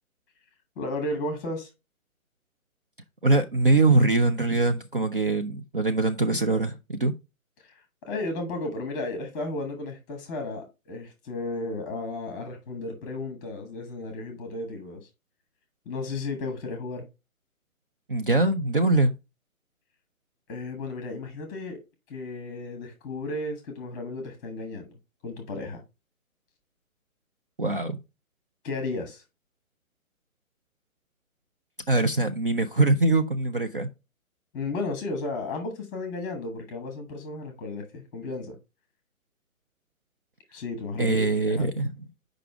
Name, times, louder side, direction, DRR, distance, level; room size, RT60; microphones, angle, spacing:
voice 1, 0.8-1.7 7.6-15.1 15.8-17.0 20.5-21.8 22.1-25.0 25.2-25.8 28.6-29.2 34.5-38.6 40.5-41.7, left 2 dB, 15° left, 1.0 m, -34 dB
voice 2, 3.2-7.1 18.1-19.1 27.6-28.0 31.9-33.9 41.0-41.9, right 2 dB, 40° right, 0.5 m, -23 dB
6.6 x 5.1 x 3.4 m
figure-of-eight pair, 140°, 42 cm